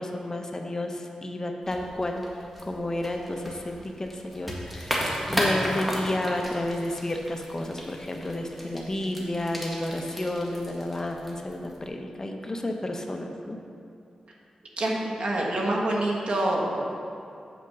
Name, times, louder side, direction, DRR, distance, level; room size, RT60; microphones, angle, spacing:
voice 1, 0.0-2.2 2.6-13.6, left 1 dB, 30° left, 3 dB, 0.8 m, -31 dB
sound 1, 1.6-11.9, equal, ahead, 1.7 m, -34 dB
voice 2, 14.8-16.9, right 1 dB, 65° right, -2 dB, 1.4 m, -26 dB
8.0 x 5.1 x 6.4 m, 2.5 s
wide cardioid pair, 85°, 2 cm